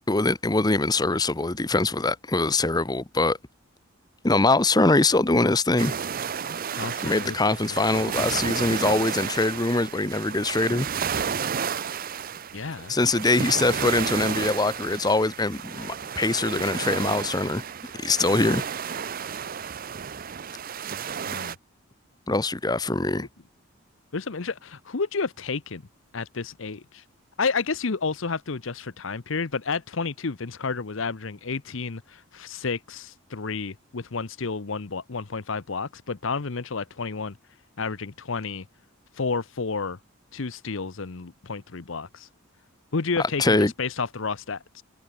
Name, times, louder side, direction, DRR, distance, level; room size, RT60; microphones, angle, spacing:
voice 1, 0.1-3.4 4.2-5.9 7.0-10.9 12.9-17.6 18.0-18.6 22.3-23.3 43.2-43.7, left 2 dB, 20° left, 0.8 m, -23 dB
sound 1, 5.8-21.5, right 7 dB, 40° right, 0.6 m, -32 dB
voice 2, 6.8-7.6 12.5-12.9 21.3-21.6 23.1-23.3 24.1-25.8 26.1-27.0 27.4-37.4 37.8-38.7 39.1-40.0 40.3-42.3 42.9-44.8, left 4 dB, 65° left, 0.8 m, -31 dB
head